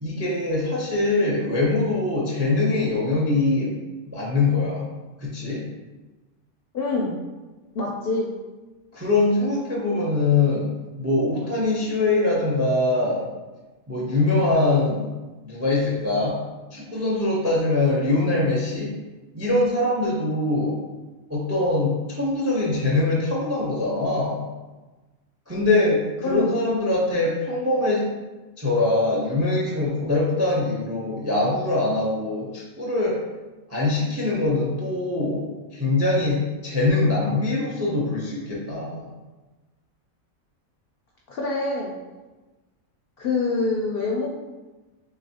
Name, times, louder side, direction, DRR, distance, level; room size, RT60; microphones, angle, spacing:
voice 1, 0.0-3.7 4.1-4.9 5.2-5.6 8.9-10.7 11.0-13.3 13.9-15.1 15.4-16.4 16.7-18.9 19.3-20.8 21.3-24.4 25.5-28.1 28.6-33.2 33.7-35.5 35.7-39.1, left 2 dB, 25° right, -4 dB, 0.3 m, -23 dB
voice 2, 6.7-7.1 7.7-8.3 26.2-26.5 41.3-41.9 43.2-44.3, left 3 dB, 60° left, -3 dB, 0.6 m, -25 dB
3.9 x 3.4 x 2.7 m, 1.2 s
omnidirectional pair, 1.5 m